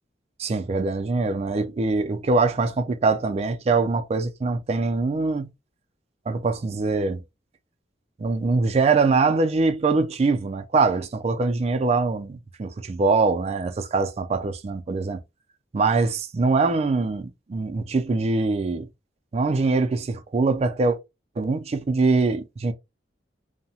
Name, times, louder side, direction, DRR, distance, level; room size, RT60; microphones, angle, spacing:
voice 1, 0.4-5.5 6.3-7.2 8.2-15.2 15.7-18.9 19.3-21.0 21.4-22.7, right 3 dB, 35° right, 0.4 m, -23 dB
2.7 x 2.1 x 2.7 m
head